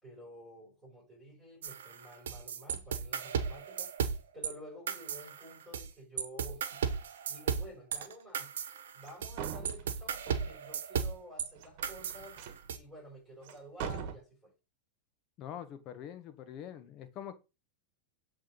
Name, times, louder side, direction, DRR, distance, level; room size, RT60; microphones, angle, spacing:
voice 1, 0.0-6.9 7.3-8.5 8.9-14.5, equal, ahead, 5.2 m, -51 dB
sound 1, 1.6-4.5 4.9-5.9 6.2-11.5 11.8-12.8, right 7 dB, 85° right, 1.0 m, -35 dB
sound 2, 9.1-9.2 9.4-10.6 11.6-12.7 13.4-13.5 13.8-14.1, right 8 dB, 55° right, 1.2 m, -41 dB
voice 2, 15.4-17.3, left 10 dB, 40° left, 1.3 m, -44 dB
7.9 x 3.6 x 5.3 m
hypercardioid pair, 130°, 0 cm